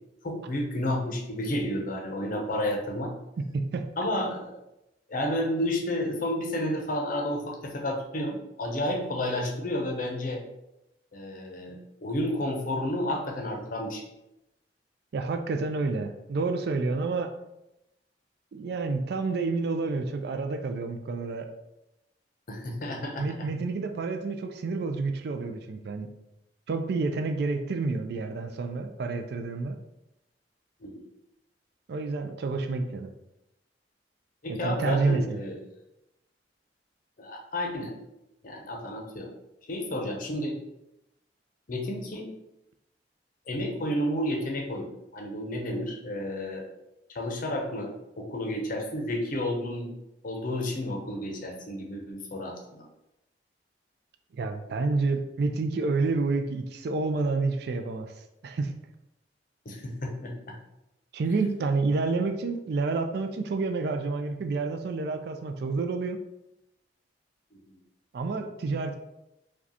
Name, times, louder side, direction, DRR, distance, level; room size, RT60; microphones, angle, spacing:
voice 1, 0.2-3.1 4.0-4.5 5.1-10.4 11.1-14.1 22.5-23.3 30.8-31.1 34.4-35.6 37.2-38.0 38.4-39.3 39.7-40.6 41.7-42.3 43.5-46.7 47.1-49.9 50.2-52.8 59.7-60.3, left 1 dB, 50° left, 1 dB, 0.6 m, -31 dB
voice 2, 3.5-3.9 15.1-17.3 18.5-21.5 23.2-26.1 26.7-29.8 31.9-33.1 34.6-35.4 54.3-58.1 58.4-58.7 61.1-66.2 68.1-69.0, right 3 dB, 65° right, 6 dB, 0.4 m, -29 dB
4.8 x 2.3 x 2.8 m, 0.89 s
head